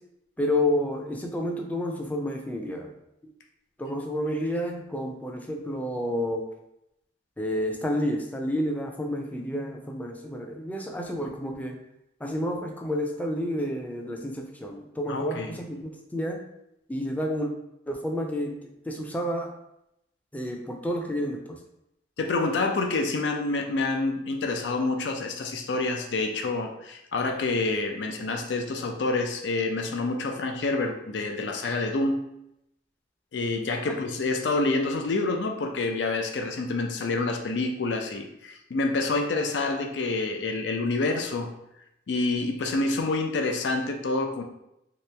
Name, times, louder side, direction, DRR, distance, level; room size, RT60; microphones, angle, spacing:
voice 1, 0.4-2.9 3.8-6.4 7.4-11.8 12.2-16.4 16.9-17.5 17.9-18.5 18.9-19.5 20.3-21.4, left 1 dB, 10° left, 2 dB, 0.4 m, -30 dB
voice 2, 15.1-15.6 22.2-32.2 33.3-41.5 42.1-44.4, left 3 dB, 90° left, 4 dB, 0.4 m, -27 dB
3.0 x 2.9 x 3.3 m, 0.83 s
head